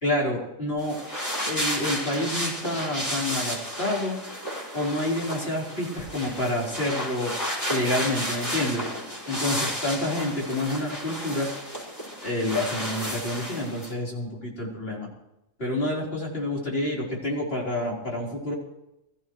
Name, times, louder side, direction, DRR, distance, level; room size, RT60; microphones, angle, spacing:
voice 1, 0.0-1.0 1.5-4.2 4.7-7.3 7.7-8.9 9.3-11.5 12.2-15.1 15.6-18.5, left 1 dB, 45° left, -3 dB, 4.5 m, -28 dB
sound 1, 0.8-13.9, equal, 15° left, 5.8 m, -32 dB
22.5 x 14.0 x 3.2 m, 0.91 s
omnidirectional pair, 1.4 m